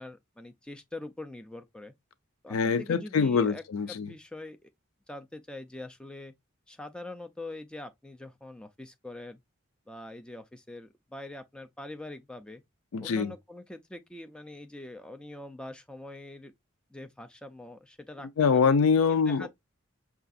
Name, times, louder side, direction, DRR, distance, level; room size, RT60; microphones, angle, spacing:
voice 1, 0.0-1.9 2.4-3.6 3.9-4.7 5.1-6.3 6.7-9.4 9.9-12.6 13.0-16.5 16.9-18.8 19.3-19.5, left 2 dB, 5° left, 0.4 m, -43 dB
voice 2, 2.5-4.1 12.9-13.3 18.4-19.5, left 5 dB, 90° left, 0.4 m, -24 dB
5.6 x 2.4 x 2.5 m
head